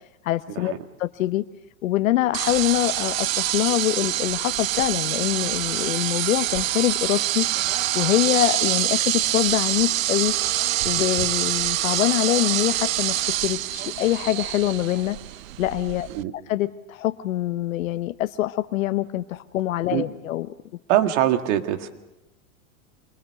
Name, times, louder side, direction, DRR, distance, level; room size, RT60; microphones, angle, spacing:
voice 1, 0.2-0.7 1.0-1.4 1.8-7.5 7.9-10.3 10.8-15.2 15.6-16.1 16.5-20.5, left 14 dB, 80° left, 11 dB, 0.8 m, -24 dB
sound 1, 2.3-16.2, right 14 dB, 75° right, 0.7 m, -25 dB
voice 2, 20.9-21.9, right 12 dB, 60° right, 8 dB, 1.9 m, -22 dB
25.0 x 20.0 x 6.6 m, 1.0 s
hypercardioid pair, 115°, 40 cm